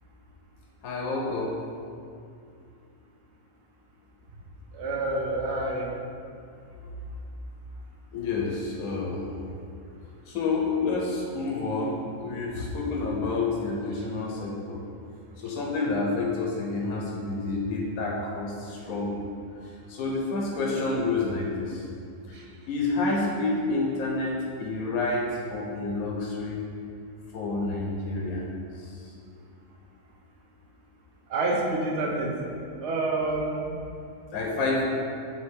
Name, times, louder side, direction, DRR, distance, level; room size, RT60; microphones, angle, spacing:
voice 1, 0.8-1.6 8.1-9.5 10.3-14.8 15.4-19.2 19.9-21.8 22.3-22.4 22.7-26.6 27.3-29.1 34.3-34.9, left 3 dB, 80° left, -2 dB, 1.2 m, -29 dB
voice 2, 4.7-5.9 31.3-32.3 32.8-33.6, right 2 dB, 55° right, -1 dB, 1.1 m, -27 dB
7.9 x 2.9 x 4.6 m, 2.4 s
omnidirectional pair, 1.5 m